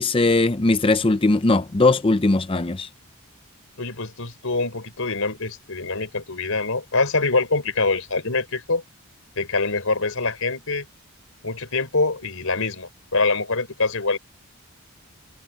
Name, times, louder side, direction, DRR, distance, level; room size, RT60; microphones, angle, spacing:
voice 1, 0.0-2.9, left 2 dB, 25° left, 0.6 m, -19 dB
voice 2, 3.8-8.8 9.4-10.9 11.4-14.2, left 3 dB, 70° left, 4.0 m, -24 dB
head